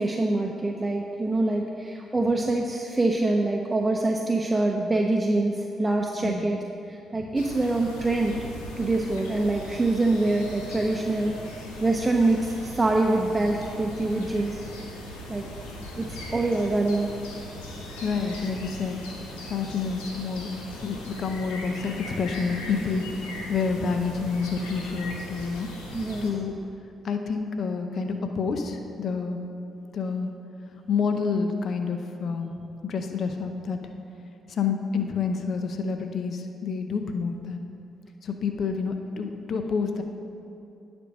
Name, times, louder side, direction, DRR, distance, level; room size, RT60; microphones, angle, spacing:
voice 1, 0.0-6.6 6.9-8.3 8.8-11.4 11.8-14.6 15.3-15.4 16.0-17.1 25.9-26.2, right 2 dB, 20° right, 1 dB, 0.7 m, -25 dB
voice 2, 6.2-6.5 16.0-16.2 17.5-17.7 18.0-19.0 19.5-20.5 20.8-25.7 26.2-26.5 27.0-29.4 29.9-30.3 30.9-32.5 32.8-33.8 34.5-37.6 38.2-40.0, left 5 dB, 60° left, 6 dB, 0.7 m, -28 dB
sound 1, 7.3-26.3, left 1 dB, 90° left, 1.1 m, -39 dB
10.0 x 5.3 x 6.2 m, 2.7 s
hypercardioid pair, 45°, 0 cm